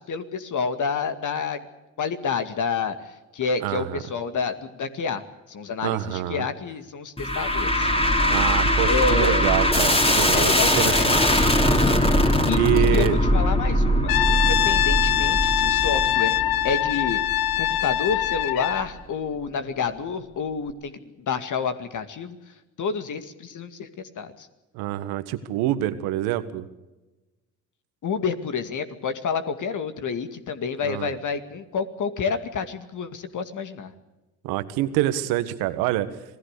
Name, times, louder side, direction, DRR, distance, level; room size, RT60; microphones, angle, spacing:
voice 1, 0.0-1.6 2.0-5.2 5.5-7.9 8.8-9.5 10.3-11.1 12.2-16.4 16.6-17.2 17.6-22.4 22.8-24.5 28.0-33.9, left 5 dB, 55° left, 9 dB, 2.3 m, -29 dB
voice 2, 3.6-4.0 5.8-6.4 8.3-11.2 12.6-13.2 24.7-26.7 30.8-31.1 34.4-36.1, right 14 dB, 80° right, 12 dB, 1.7 m, -26 dB
sound 1, 7.2-18.4, left 1 dB, 15° left, 3.7 m, -21 dB
Brass instrument, 14.1-18.9, left 12 dB, 70° left, 1.0 m, -23 dB
27.0 x 17.5 x 6.7 m, 1.1 s
hypercardioid pair, 60°, 37 cm